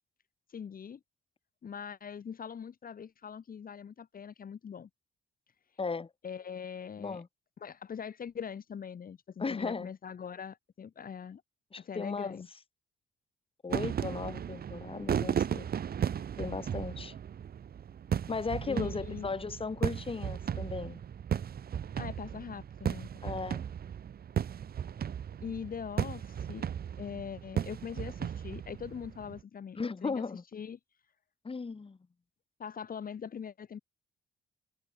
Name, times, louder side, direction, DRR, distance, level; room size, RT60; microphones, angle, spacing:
voice 1, 0.5-1.0 1.6-4.9 6.2-7.2 7.6-11.4 11.8-12.5 18.7-19.3 22.0-23.1 25.4-26.6 27.0-30.2 30.5-30.8 32.6-33.8, left 7 dB, 45° left, 2.0 m, -42 dB
voice 2, 5.8-6.1 7.0-7.3 9.4-9.9 11.7-12.4 13.6-15.7 16.4-17.1 18.3-21.0 23.2-23.6 29.8-30.4 31.4-32.0, left 4 dB, 25° left, 2.8 m, -36 dB
sound 1, 13.7-29.4, right 8 dB, 50° right, 1.2 m, -36 dB
cardioid pair, 90°, 20 cm